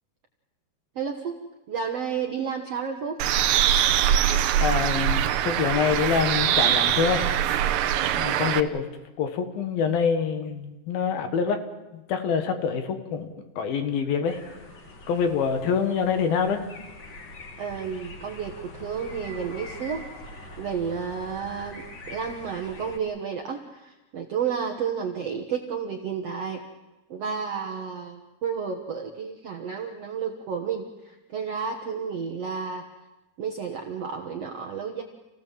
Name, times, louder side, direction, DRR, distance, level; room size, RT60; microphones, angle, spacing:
voice 1, 1.0-3.2 17.6-20.0 20.6-26.6 27.1-32.8 33.4-35.0, right 6 dB, 55° right, 3 dB, 1.8 m, -31 dB
Bird, 3.2-8.6, right 10 dB, 70° right, 2.3 m, -23 dB
voice 2, 4.6-7.6 8.2-8.9 9.2-11.6 11.9-14.4 15.1-16.6, left 6 dB, 70° left, 7 dB, 3.4 m, -26 dB
sound 1, 14.2-23.0, left 1 dB, 35° left, 2.3 m, -43 dB
28.5 x 16.5 x 7.5 m, 1.1 s
omnidirectional pair, 4.4 m